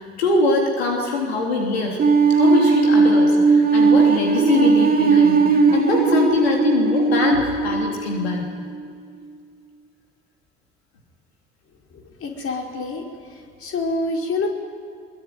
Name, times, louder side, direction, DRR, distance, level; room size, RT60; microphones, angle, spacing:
voice 1, 0.0-2.0 2.3-8.5, left 3 dB, 80° left, 0 dB, 3.4 m, -23 dB
sound 1, 2.0-8.9, right 4 dB, 30° right, 2.9 m, -17 dB
voice 2, 11.9-13.0 13.6-14.5, left 3 dB, 45° left, 1 dB, 5.1 m, -26 dB
23.5 x 23.0 x 9.5 m, 2.1 s
hypercardioid pair, 55°, 31 cm